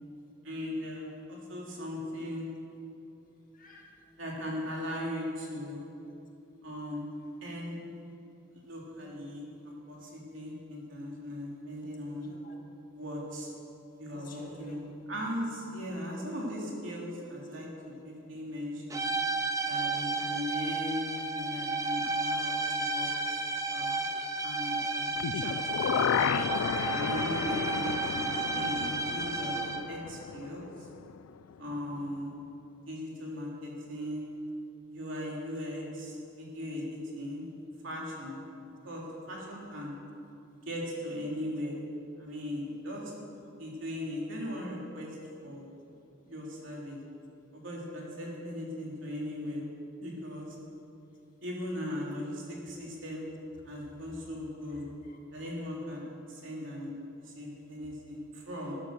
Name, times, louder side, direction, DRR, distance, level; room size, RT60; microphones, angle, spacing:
voice 1, 0.4-2.5 4.2-5.8 6.6-7.0 7.4-7.8 8.5-12.2 12.9-13.5 14.0-19.1 19.6-21.0 21.3-23.1 23.7-24.0 24.4-25.6 25.9-26.3 26.9-30.7 31.6-32.3 32.9-34.3 34.9-37.4 37.8-38.4 38.8-39.9 40.6-41.8 42.2-43.1 43.6-45.1 45.4-45.7 46.3-47.0 47.5-49.7 50.0-50.5 51.4-53.2 53.6-54.8 55.3-56.0 56.3-56.9 57.2-58.7, left 1 dB, 65° right, -3 dB, 3.3 m, -38 dB
voice 2, 3.5-3.9 11.8-12.6 13.9-14.8 31.7-32.1 38.2-38.3 54.7-55.2, left 2 dB, 40° left, 0 dB, 1.9 m, -53 dB
sound 1, 18.9-30.0, right 3 dB, 15° right, 0.7 m, -32 dB
sound 2, 25.2-31.2 31.5-31.6, left 8 dB, 85° left, 0.3 m, -33 dB
12.5 x 11.0 x 6.7 m, 2.7 s
head